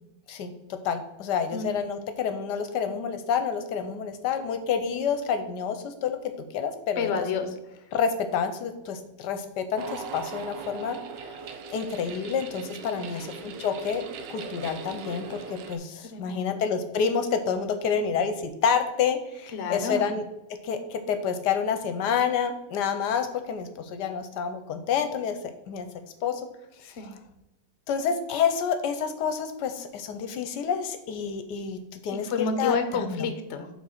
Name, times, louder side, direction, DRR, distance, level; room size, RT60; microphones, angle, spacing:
voice 1, 0.3-6.2 6.5-7.2 7.9-11.0 11.2-11.4 11.7-14.0 14.3-20.2 20.6-25.4 25.7-25.9 26.2-26.4 27.9-33.3, left 6 dB, 75° left, 8 dB, 1.2 m, -28 dB
voice 2, 7.0-7.5 12.9-13.3 16.1-16.6 19.5-20.2 26.8-27.2 32.1-33.7, left 5 dB, 55° left, 8 dB, 0.8 m, -30 dB
sound 1, 9.8-15.8, right 5 dB, 80° right, 1.4 m, -39 dB
6.1 x 4.0 x 5.7 m, 0.95 s
omnidirectional pair, 1.9 m